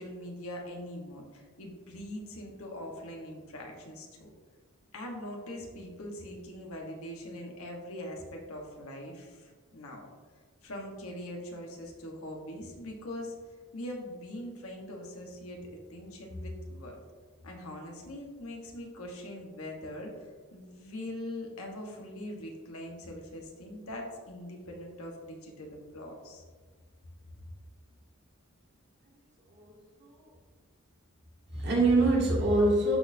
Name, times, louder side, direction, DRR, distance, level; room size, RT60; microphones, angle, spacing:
voice 1, 0.0-4.3 4.9-10.1 10.6-13.4 13.7-15.6 15.9-17.0 17.4-20.2 20.5-26.4, left 1 dB, 75° left, 0 dB, 1.3 m, -42 dB
voice 2, 29.5-30.3 31.5-33.0, right 2 dB, 50° right, -6 dB, 2.1 m, -25 dB
12.0 x 4.2 x 2.7 m, 1.5 s
head